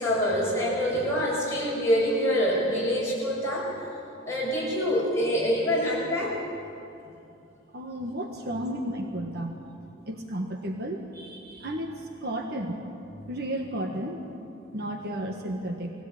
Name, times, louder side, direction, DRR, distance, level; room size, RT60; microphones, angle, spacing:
voice 1, 0.0-3.7 4.3-6.4, equal, 15° left, -6 dB, 7.2 m, -25 dB
voice 2, 7.7-9.6 10.1-11.9 12.2-12.8 13.3-14.2 14.7-15.9, right 1 dB, 50° right, 3 dB, 1.5 m, -33 dB
21.0 x 17.0 x 8.7 m, 2.7 s
head